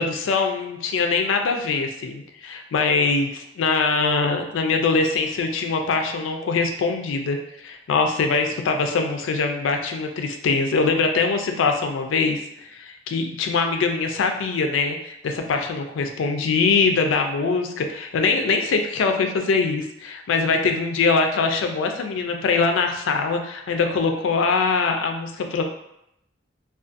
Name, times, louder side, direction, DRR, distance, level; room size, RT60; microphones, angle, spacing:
voice 1, 0.0-12.4 12.7-25.7, left 4 dB, 75° left, 4 dB, 0.3 m, -23 dB
2.4 x 2.3 x 2.4 m, 0.82 s
head